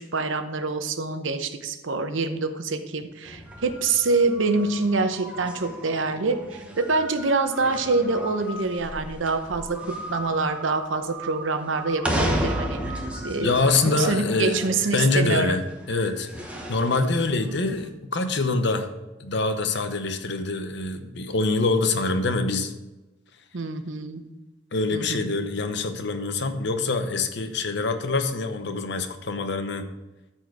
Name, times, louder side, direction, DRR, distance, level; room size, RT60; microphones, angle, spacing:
voice 1, 0.0-12.8 13.2-13.5 14.0-15.6 23.5-24.2 24.9-25.3, right 3 dB, 70° right, 9 dB, 0.8 m, -26 dB
sound 1, 3.2-17.9, right 1 dB, 5° right, 1.0 m, -34 dB
voice 2, 13.4-14.6 14.9-15.6 15.9-18.9 19.2-22.7 24.7-29.9, left 3 dB, 60° left, 8 dB, 0.8 m, -25 dB
13.0 x 4.5 x 4.7 m, 1.0 s
head